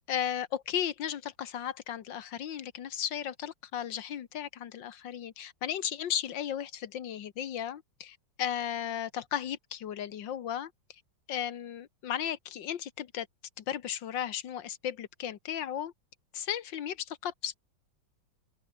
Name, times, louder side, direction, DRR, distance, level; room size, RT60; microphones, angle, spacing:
voice 1, 0.1-10.7 11.3-13.3 13.6-15.9 16.3-17.5, left 10 dB, 75° left, 1.9 m, -35 dB
open air
omnidirectional pair, 2.0 m